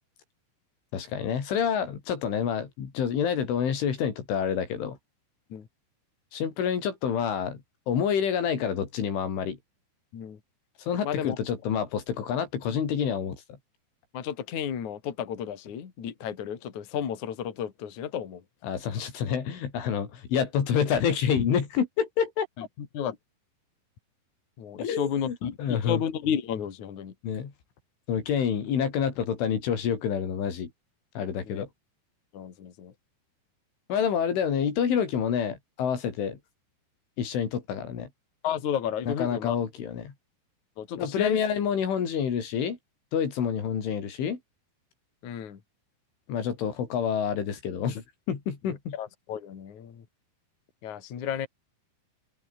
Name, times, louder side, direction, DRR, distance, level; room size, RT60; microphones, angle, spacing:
voice 1, 0.9-5.0 6.3-9.6 10.8-13.4 18.6-22.5 24.8-26.0 27.2-27.5 28.1-30.7 31.2-31.7 33.9-36.4 37.2-38.1 39.0-40.1 41.0-42.8 43.1-44.4 46.3-48.9, left 7 dB, 85° left, 6.6 m, -28 dB
voice 2, 11.0-11.4 14.1-18.4 22.8-23.2 24.6-27.1 31.5-31.7 32.3-32.9 38.4-39.6 40.8-41.4 45.2-45.6 48.9-50.0 50.8-51.5, left 8 dB, 45° left, 3.6 m, -32 dB
open air
omnidirectional pair, 5.4 m